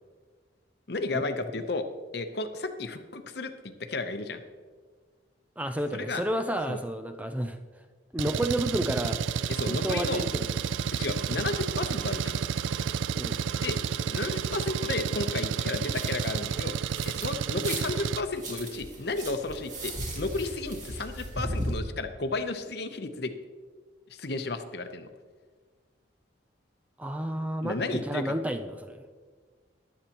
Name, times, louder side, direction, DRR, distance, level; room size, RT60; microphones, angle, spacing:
voice 1, 0.9-1.9 2.1-4.4 5.9-6.2 6.7-6.8 9.5-10.2 10.9-12.4 13.6-13.8 14.1-16.7 17.0-23.3 24.1-25.1 27.6-28.4, left 3 dB, 55° left, 8 dB, 0.8 m, -33 dB
voice 2, 5.6-7.6 8.1-9.2 9.7-10.5 13.2-13.4 27.0-29.0, right 1 dB, 10° right, 7 dB, 0.4 m, -31 dB
Engine, 8.2-18.2, right 7 dB, 85° right, 0.3 m, -30 dB
sound 1, 15.9-17.3 17.6-21.8, right 1 dB, 40° right, 2.2 m, -37 dB
15.0 x 11.0 x 3.0 m, 1.5 s
head